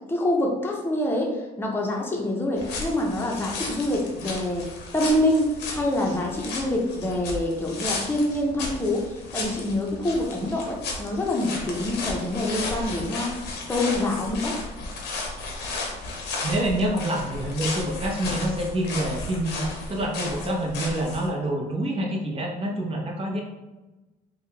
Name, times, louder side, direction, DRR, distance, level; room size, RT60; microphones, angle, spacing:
voice 1, 0.1-4.7 4.9-13.4 13.7-14.6, left 1 dB, 10° left, -1 dB, 0.8 m, -26 dB
sound 1, 2.6-21.3, left 3 dB, 90° left, 0.9 m, -34 dB
voice 2, 16.4-23.4, right 1 dB, 35° right, 0 dB, 0.9 m, -27 dB
3.7 x 2.3 x 3.3 m, 1.1 s
cardioid pair, 110°, 17 cm